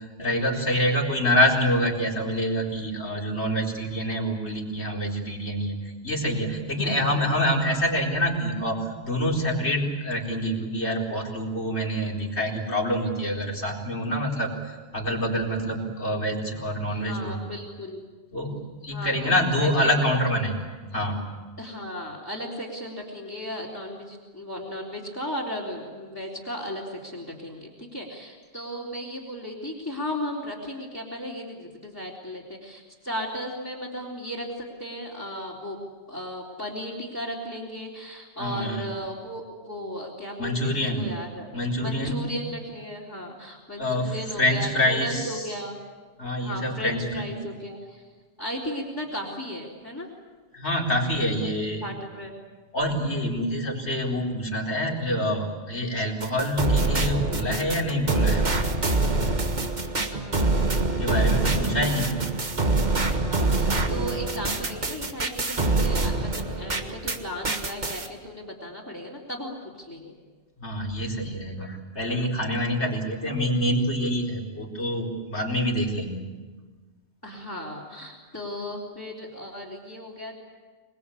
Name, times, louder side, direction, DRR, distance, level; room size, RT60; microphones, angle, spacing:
voice 1, 0.0-14.5 14.9-17.4 18.3-18.6 18.8-20.5 20.9-21.2 38.4-38.8 40.4-41.1 41.5-42.3 43.8-44.1 44.4-45.4 46.2-47.2 50.5-51.9 52.7-58.7 61.0-62.1 70.6-76.2, equal, 80° left, -1 dB, 4.5 m, -26 dB
voice 2, 6.8-7.3 16.9-18.1 18.9-20.1 21.6-35.8 36.1-41.5 41.8-45.8 46.4-48.1 48.4-50.1 51.4-51.5 51.8-52.4 60.1-61.5 61.8-62.1 63.0-70.2 77.2-80.3, equal, 15° left, -5 dB, 3.6 m, -36 dB
sound 1, 56.2-67.2 67.4-68.1, right 2 dB, 45° right, 1.7 m, -25 dB
26.0 x 21.0 x 8.5 m, 1.4 s
omnidirectional pair, 1.1 m